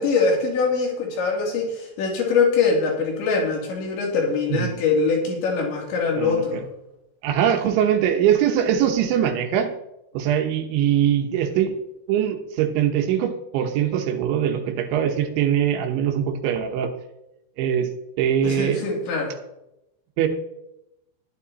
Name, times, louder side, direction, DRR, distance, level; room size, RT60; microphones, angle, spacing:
voice 1, 0.0-6.6 18.4-19.3, left 4 dB, 80° left, -1 dB, 5.0 m, -23 dB
voice 2, 7.2-9.7 10.1-11.7 12.1-16.9 17.6-17.9 18.2-18.8 20.2-20.3, right 9 dB, 85° right, 4 dB, 3.5 m, -22 dB
12.5 x 11.5 x 4.1 m, 0.89 s
omnidirectional pair, 5.2 m